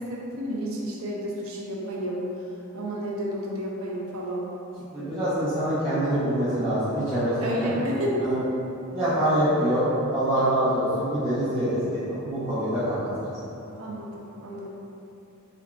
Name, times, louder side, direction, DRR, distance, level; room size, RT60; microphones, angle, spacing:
voice 1, 0.0-2.2 2.7-4.5 7.4-8.2 13.8-14.7, equal, 80° right, -4 dB, 0.6 m, -31 dB
voice 2, 4.9-7.8 8.2-8.4 8.9-9.9 10.1-13.0, right 1 dB, 10° right, -17 dB, 1.0 m, -25 dB
3.6 x 3.5 x 2.4 m, 3.0 s
head